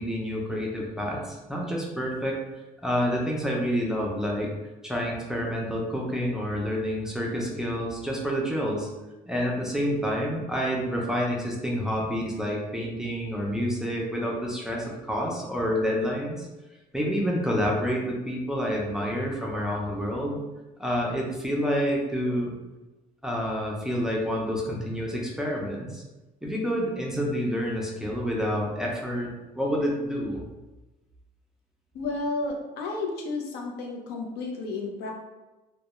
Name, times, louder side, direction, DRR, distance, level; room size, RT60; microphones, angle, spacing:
voice 1, 0.0-2.4 2.8-4.5 4.8-8.9 9.3-16.5 16.9-20.4 20.8-22.6 23.2-26.0 26.4-30.4, equal, 5° right, -3 dB, 0.5 m, -28 dB
voice 2, 31.9-35.1, left 3 dB, 80° left, 1 dB, 0.5 m, -32 dB
2.2 x 2.1 x 2.9 m, 1.1 s
cardioid pair, 110°, 17 cm